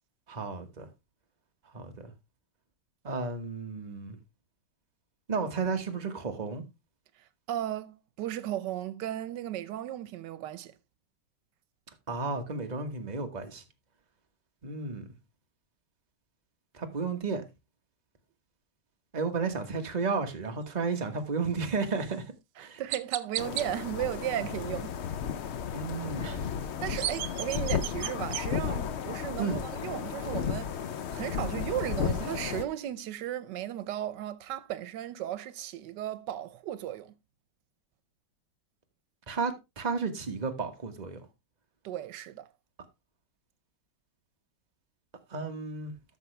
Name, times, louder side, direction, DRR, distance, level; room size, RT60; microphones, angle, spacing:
voice 1, 0.3-0.9 1.7-2.1 3.0-4.2 5.3-6.6 12.1-13.6 14.6-15.1 16.7-17.4 19.1-22.2 22.6-22.8 25.7-26.5 29.4-29.6 39.3-41.3 45.3-45.9, right 4 dB, 25° right, 1.3 m, -33 dB
voice 2, 7.5-10.7 22.6-25.0 26.8-37.1 41.8-42.5, right 12 dB, 85° right, 1.4 m, -35 dB
Chirp tweet, 22.0-22.1 22.9-23.7 26.6-28.4, right 12 dB, 65° right, 1.0 m, -34 dB
sound 1, 23.4-32.6, left 8 dB, 60° left, 0.7 m, -34 dB
12.5 x 6.2 x 3.2 m
omnidirectional pair, 1.8 m